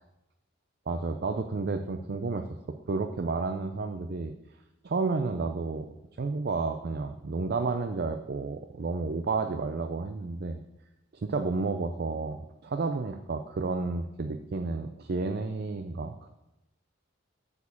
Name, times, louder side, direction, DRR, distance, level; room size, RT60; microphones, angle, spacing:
voice 1, 0.9-4.3 4.8-10.6 11.2-12.4 12.6-16.3, right 3 dB, 50° right, 7 dB, 0.4 m, -31 dB
8.1 x 4.8 x 7.1 m, 0.95 s
head